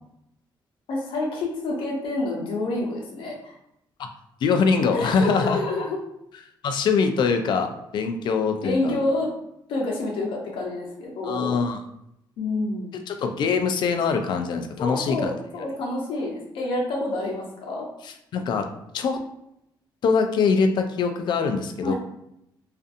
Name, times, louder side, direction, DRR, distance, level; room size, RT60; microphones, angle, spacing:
voice 1, 0.9-3.5 4.9-5.9 8.6-9.3 9.7-11.6 12.4-12.9 14.8-17.9 21.8-21.9, left 2 dB, 80° left, -1 dB, 0.8 m, -28 dB
voice 2, 4.4-5.6 6.6-9.0 11.2-11.8 13.1-15.4 18.0-18.7 18.9-19.2 20.0-21.9, left 5 dB, 60° left, 6 dB, 0.4 m, -23 dB
2.5 x 2.4 x 2.5 m, 0.79 s
cardioid pair, 120°, 9 cm